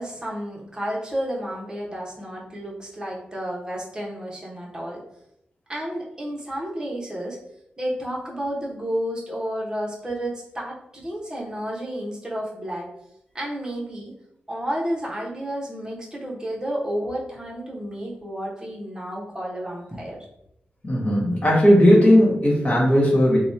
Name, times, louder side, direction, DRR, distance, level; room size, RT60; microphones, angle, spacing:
voice 1, 0.0-5.0 5.7-7.4 7.8-12.9 13.3-14.1 14.5-20.2, equal, 20° right, -3 dB, 1.0 m, -31 dB
voice 2, 20.8-23.4, equal, 35° left, -4 dB, 1.5 m, -16 dB
3.0 x 2.2 x 4.2 m, 0.77 s
wide cardioid pair, 105°, 4 cm